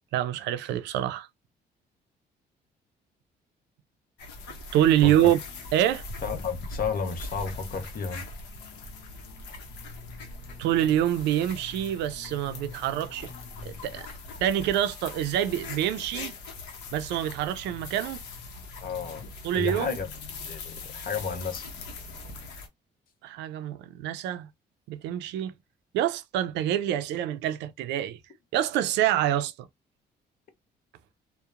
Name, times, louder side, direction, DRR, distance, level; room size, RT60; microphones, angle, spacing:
voice 1, 0.1-1.3 4.7-5.4 5.7-6.1 10.6-13.3 13.6-14.1 14.4-16.3 16.9-18.2 19.4-20.0 23.2-24.5 24.9-25.5 25.9-28.2 28.5-29.7, right 11 dB, 85° right, 0.4 m, -26 dB
sound 1, 4.2-22.7, left 3 dB, 90° left, 0.7 m, -41 dB
voice 2, 6.2-8.2 18.8-19.2 19.5-20.1 20.4-21.7, left 6 dB, 55° left, 0.8 m, -32 dB
2.8 x 2.1 x 2.3 m
cardioid pair, 100°, 17 cm